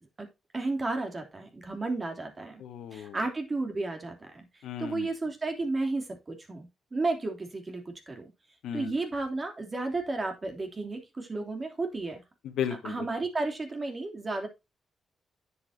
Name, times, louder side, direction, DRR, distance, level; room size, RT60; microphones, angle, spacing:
voice 1, 0.5-2.6 2.9-4.5 4.8-8.3 8.7-12.2 12.8-14.5, right 3 dB, 30° right, 5 dB, 3.1 m, -33 dB
voice 2, 2.6-3.2 4.6-5.1 8.6-8.9 12.4-13.1, left 9 dB, 85° left, 7 dB, 1.7 m, -35 dB
9.8 x 8.1 x 2.8 m, 0.23 s
cardioid pair, 90°, 0 cm